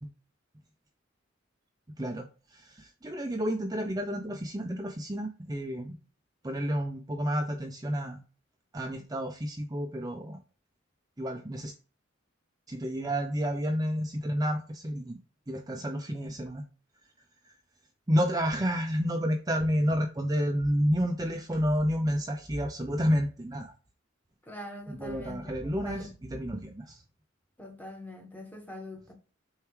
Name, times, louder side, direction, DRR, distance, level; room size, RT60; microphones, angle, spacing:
voice 1, 2.0-6.0 6.4-8.2 8.7-10.4 11.2-11.7 12.7-15.2 15.5-16.6 17.4-17.5 18.1-23.7 24.9-27.0, equal, 20° right, 0.6 m, -30 dB
voice 2, 24.4-26.1 27.6-29.1, left 1 dB, 10° left, 1.5 m, -43 dB
6.8 x 4.5 x 3.2 m
head